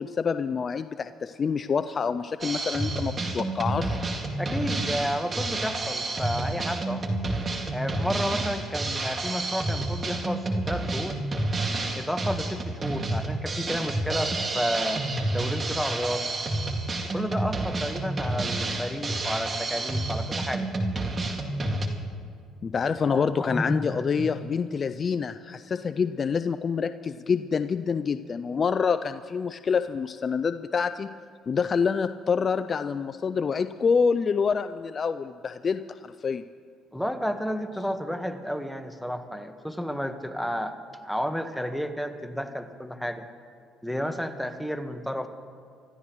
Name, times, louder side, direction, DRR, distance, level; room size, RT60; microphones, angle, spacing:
voice 1, 0.0-4.0 22.6-31.1 31.5-36.4, left 6 dB, 40° left, 11 dB, 0.4 m, -27 dB
Drum kit, 2.4-21.9, right 2 dB, 35° right, 2.1 m, -29 dB
voice 2, 4.4-7.1 7.7-11.2 11.9-15.1 15.3-16.3 17.1-20.7 23.0-24.3 36.9-40.7 41.0-43.3 43.8-45.3, equal, ahead, 7 dB, 1.3 m, -31 dB
26.0 x 13.5 x 3.1 m, 2.3 s
supercardioid pair, 75°, 0 cm